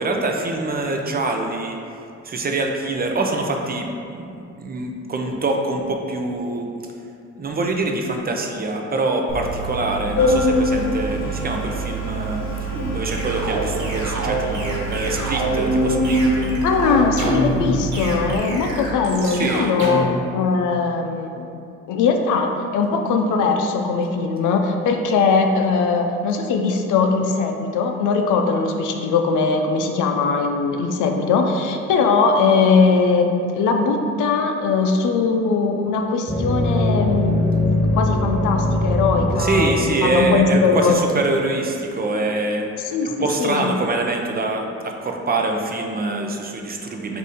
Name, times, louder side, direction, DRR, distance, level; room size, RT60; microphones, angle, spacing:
voice 1, 0.0-1.8 2.2-6.7 7.4-16.5 18.5-18.6 19.2-19.7 39.4-42.7 43.0-47.2, right 2 dB, 30° right, 2 dB, 0.5 m, -25 dB
Organ, 9.3-18.4, equal, 65° left, 1.1 m, -24 dB
sound 1, 12.7-20.1, right 1 dB, 70° right, 1.2 m, -26 dB
voice 2, 16.6-20.0 20.3-21.5 21.9-37.4 37.9-41.0 42.9-43.7, left 4 dB, 80° left, 4 dB, 0.5 m, -20 dB
sound 2, 36.3-41.1, left 1 dB, 25° left, 0.7 m, -22 dB
4.1 x 2.7 x 4.9 m, 2.5 s
cardioid pair, 90°, 30 cm